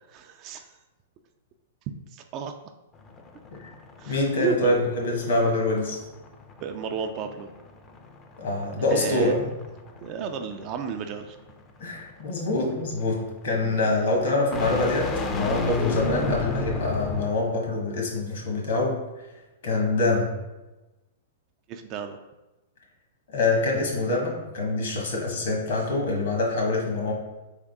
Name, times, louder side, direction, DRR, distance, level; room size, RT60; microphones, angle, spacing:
voice 1, 0.1-0.8 2.1-2.5 4.0-4.8 6.6-7.5 8.8-9.4 10.0-11.4 13.6-13.8 16.0-16.5 21.7-22.2, right 6 dB, 40° right, 6 dB, 0.4 m, -33 dB
sound 1, 2.9-17.5, left 3 dB, 25° left, 0.5 m, -35 dB
voice 2, 4.0-6.0 8.4-9.5 11.8-19.0 19.6-20.3 23.3-27.1, left 2 dB, 70° left, 0 dB, 1.5 m, -25 dB
3.8 x 3.6 x 3.6 m, 1.1 s
hypercardioid pair, 120°, 0 cm